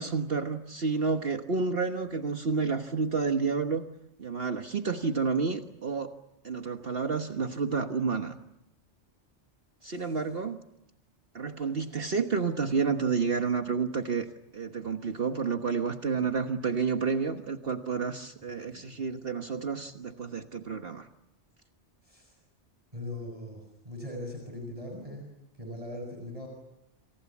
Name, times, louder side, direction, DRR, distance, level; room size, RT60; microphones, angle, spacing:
voice 1, 0.0-3.9 4.2-6.1 6.4-8.4 9.8-10.6 11.3-14.3 14.5-21.1, right 5 dB, 55° right, 6 dB, 1.5 m, -30 dB
voice 2, 9.8-10.2 18.4-19.0 22.0-22.4 22.9-26.5, left 1 dB, 30° right, 1 dB, 6.5 m, -41 dB
28.0 x 28.0 x 7.3 m, 0.86 s
omnidirectional pair, 1.2 m